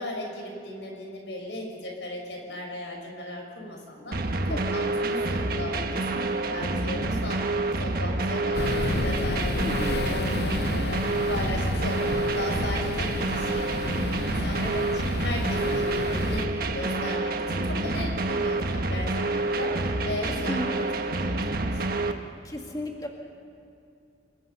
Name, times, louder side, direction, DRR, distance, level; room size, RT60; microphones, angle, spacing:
voice 1, 0.0-4.2 4.5-11.0 11.3-14.6 15.0-16.4 16.7-20.9 21.1-22.1, left 1 dB, 90° left, 1 dB, 5.9 m, -37 dB
sound 1, 4.1-22.1, right 2 dB, 60° right, 1.4 m, -28 dB
voice 2, 4.5-4.8 9.6-10.0 14.6-14.9 20.5-20.9 22.4-23.1, left 1 dB, 20° left, 1 dB, 2.0 m, -34 dB
sound 2, 8.5-16.5, left 3 dB, 65° left, 0.7 m, -32 dB
27.5 x 21.5 x 5.6 m, 2.6 s
head